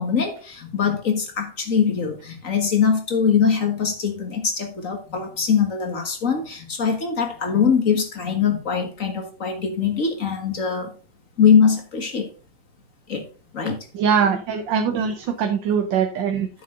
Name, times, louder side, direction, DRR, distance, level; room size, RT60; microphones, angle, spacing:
voice 1, 0.0-10.9 11.4-12.3 13.1-13.3 13.5-13.8, left 6 dB, 45° left, 5 dB, 1.9 m, -22 dB
voice 2, 13.9-16.5, right 7 dB, 90° right, 6 dB, 1.6 m, -22 dB
9.7 x 7.0 x 3.8 m, 0.35 s
omnidirectional pair, 1.9 m